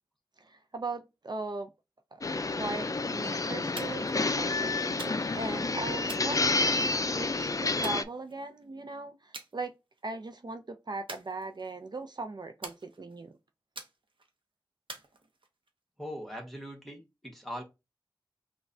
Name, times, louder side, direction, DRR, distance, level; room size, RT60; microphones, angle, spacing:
voice 1, 0.4-1.7 2.1-2.2 2.5-6.9 7.2-9.7 10.0-13.3, right 3 dB, 55° right, 0.5 m, -39 dB
sound 1, 2.2-8.0, left 3 dB, 45° left, 0.4 m, -29 dB
sound 2, 3.8-4.2 5.0-5.5 6.1-7.0 7.8-8.6 9.3-9.5 9.9-10.3 11.1-11.9 12.6-13.3 13.8-14.3 14.9-15.7, right 3 dB, 90° right, 0.8 m, -46 dB
voice 2, 16.0-17.6, equal, ahead, 1.3 m, -41 dB
5.9 x 2.3 x 2.6 m
wide cardioid pair, 50°, 8 cm